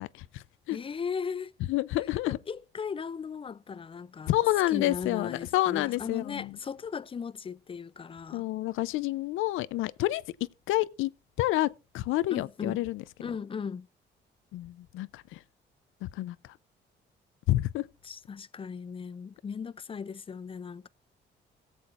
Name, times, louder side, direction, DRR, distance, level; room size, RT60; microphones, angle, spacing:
voice 1, 0.0-0.8 1.7-2.4 4.3-6.6 8.3-10.2 10.7-11.1 11.4-13.0 14.5-15.4 16.0-16.4 17.5-17.9, left 16 dB, 90° left, 0.5 m, -29 dB
voice 2, 0.7-1.5 2.3-4.3 4.7-8.5 12.3-12.8 13.2-13.9 18.0-20.9, left 6 dB, 25° left, 0.4 m, -37 dB
18.0 x 7.8 x 2.4 m
cardioid pair, 90°, 20 cm